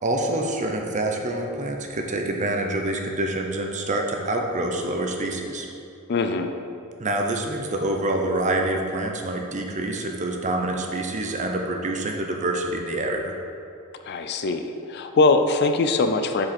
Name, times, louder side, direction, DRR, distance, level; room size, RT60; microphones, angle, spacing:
voice 1, 0.0-5.7 7.0-13.4, right 1 dB, 35° right, 2 dB, 0.7 m, -26 dB
voice 2, 6.1-6.5 14.0-16.5, left 3 dB, 50° left, 6 dB, 0.4 m, -22 dB
7.6 x 4.9 x 4.3 m, 2.6 s
head